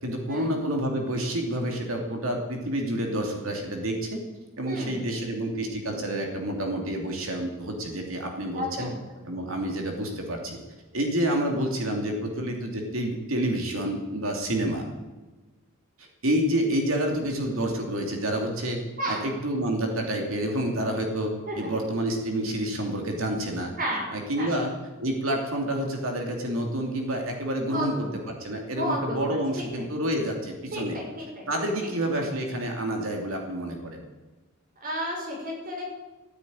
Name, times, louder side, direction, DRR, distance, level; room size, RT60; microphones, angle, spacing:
voice 1, 0.0-4.2 4.6-8.9 9.2-10.6 10.9-14.8 16.0-18.8 19.1-23.7 24.1-24.7 25.0-31.0 31.5-34.0, right 1 dB, 75° right, 2 dB, 2.9 m, -28 dB
voice 2, 4.7-5.0 8.5-8.9 19.0-19.3 21.5-21.7 23.8-24.1 24.4-24.5 27.6-28.2 28.7-29.8 30.7-31.5 34.8-35.8, equal, 45° right, -1 dB, 6.1 m, -32 dB
15.0 x 9.2 x 9.5 m, 1.2 s
head